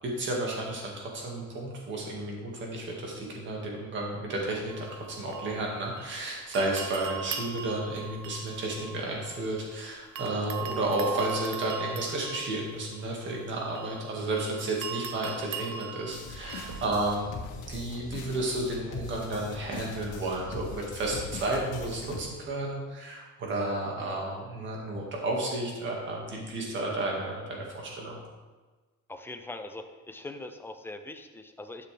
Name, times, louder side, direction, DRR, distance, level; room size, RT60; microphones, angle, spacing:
voice 1, 0.0-17.3 17.7-28.2, right 2 dB, 40° right, -1 dB, 1.8 m, -32 dB
sound 1, 4.7-6.2 6.5-9.7 10.2-16.9, right 7 dB, 80° right, 1.1 m, -40 dB
sound 2, 16.1-22.2, left 3 dB, 85° left, 1.7 m, -41 dB
voice 2, 29.1-31.9, left 2 dB, 10° left, 7 dB, 0.3 m, -42 dB
11.5 x 6.8 x 3.3 m, 1.3 s
cardioid pair, 180°, 31 cm